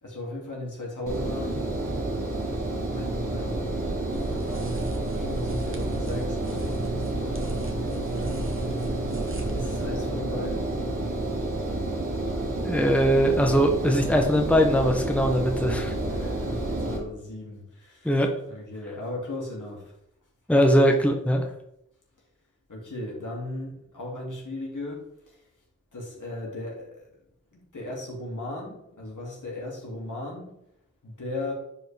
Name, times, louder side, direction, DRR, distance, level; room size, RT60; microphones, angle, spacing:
voice 1, 0.0-1.7 2.9-4.8 5.1-9.2 9.5-10.9 16.0-19.9 22.7-25.4 25.9-27.0 27.5-30.5 31.0-31.5, left 1 dB, 75° left, -3 dB, 2.8 m, -37 dB
Engine, 1.1-17.0, right 2 dB, 90° right, 1.9 m, -30 dB
sound 1, 4.1-9.9, right 3 dB, 40° right, 1.3 m, -35 dB
voice 2, 12.6-15.9 18.0-18.3 20.5-21.4, equal, 5° left, 3 dB, 1.0 m, -21 dB
10.0 x 5.2 x 3.5 m, 0.78 s
wide cardioid pair, 80°, 31 cm